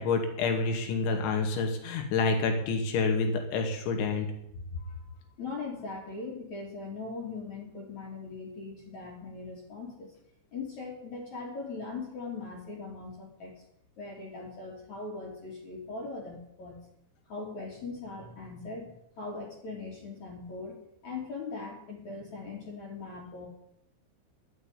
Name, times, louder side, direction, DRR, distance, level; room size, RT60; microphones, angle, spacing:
voice 1, 0.0-4.3, left 4 dB, 75° left, 4 dB, 4.6 m, -28 dB
voice 2, 4.8-10.1 10.5-13.5 14.0-16.8 17.3-20.8 21.0-23.5, left 3 dB, 45° left, -2 dB, 3.4 m, -40 dB
11.5 x 9.4 x 10.0 m, 0.76 s
omnidirectional pair, 5.4 m